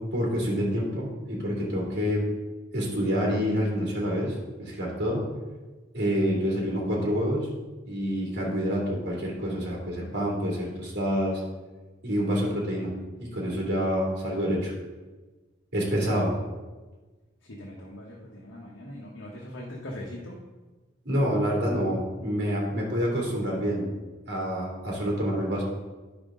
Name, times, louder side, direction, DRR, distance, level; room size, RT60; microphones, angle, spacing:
voice 1, 0.1-2.2 2.7-5.3 5.9-7.5 7.9-11.4 12.0-12.9 13.2-14.7 15.7-16.3 21.0-23.8 24.3-25.6, equal, 60° right, -4 dB, 2.8 m, -27 dB
voice 2, 17.4-20.4, left 1 dB, 80° left, -3 dB, 1.2 m, -41 dB
10.0 x 5.9 x 3.8 m, 1.2 s
head